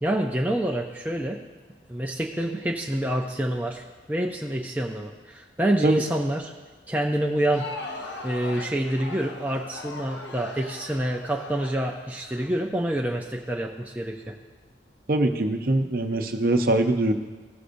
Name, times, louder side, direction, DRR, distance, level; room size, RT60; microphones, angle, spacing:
voice 1, 0.0-1.4 1.9-6.5 6.9-7.7 7.9-14.3, right 1 dB, 10° right, 0 dB, 0.4 m, -27 dB
Crowd, 7.3-13.2, left 3 dB, 85° left, 0.8 m, -40 dB
voice 2, 15.1-17.1, right 2 dB, 55° right, 6 dB, 0.6 m, -22 dB
16.0 x 6.5 x 2.6 m, 1.3 s
head